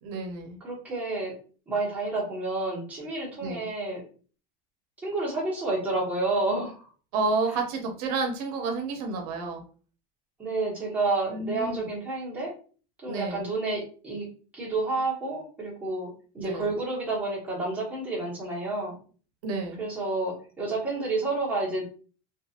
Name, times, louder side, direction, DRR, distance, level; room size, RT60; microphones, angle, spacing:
voice 1, 0.0-0.6 3.4-3.6 7.1-9.6 11.3-11.8 13.1-13.5 16.4-16.7 19.4-19.8, right 3 dB, 75° right, 3 dB, 0.7 m, -30 dB
voice 2, 0.6-1.3 1.7-4.0 5.0-6.9 10.4-12.5 13.0-14.3 14.5-19.0 19.8-21.8, right 2 dB, 10° right, -7 dB, 1.1 m, -30 dB
2.5 x 2.5 x 2.7 m, 0.40 s
cardioid pair, 165°, 19 cm